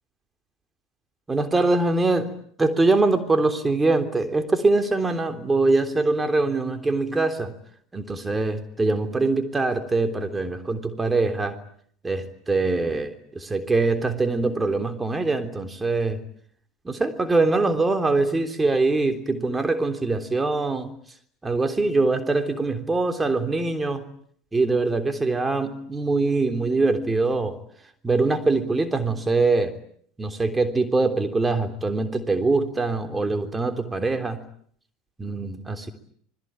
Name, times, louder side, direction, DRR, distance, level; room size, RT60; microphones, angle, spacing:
voice 1, 1.3-2.3 2.6-7.5 7.9-11.6 12.0-16.2 16.9-20.9 21.4-24.0 24.5-27.6 28.0-29.8 30.2-34.4 35.2-35.9, right 3 dB, 15° right, 7 dB, 3.4 m, -23 dB
28.0 x 21.5 x 9.0 m, 0.63 s
figure-of-eight pair, 75°, 0 cm